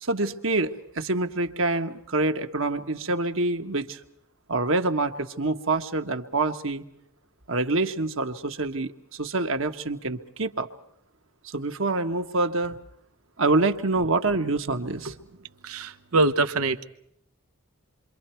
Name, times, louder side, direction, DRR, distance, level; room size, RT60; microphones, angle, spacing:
voice 1, 0.0-4.0 4.5-6.8 7.5-10.7 11.4-12.8 13.4-15.1, right 2 dB, 65° right, 6 dB, 1.5 m, -26 dB
voice 2, 15.6-16.8, right 2 dB, 85° right, 8 dB, 1.0 m, -24 dB
28.5 x 24.5 x 4.6 m, 0.77 s
head